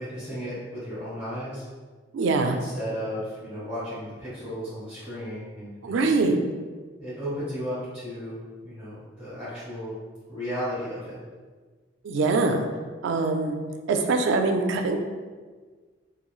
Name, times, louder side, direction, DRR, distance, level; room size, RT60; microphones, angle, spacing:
voice 1, 0.0-1.6 2.5-6.1 7.0-9.9 10.3-11.2, equal, 5° right, -15 dB, 1.4 m, -34 dB
voice 2, 2.1-2.6 5.8-6.4 12.0-12.7 13.0-13.5 13.9-15.0, right 3 dB, 75° right, 5 dB, 0.3 m, -23 dB
3.0 x 2.6 x 2.3 m, 1.4 s
head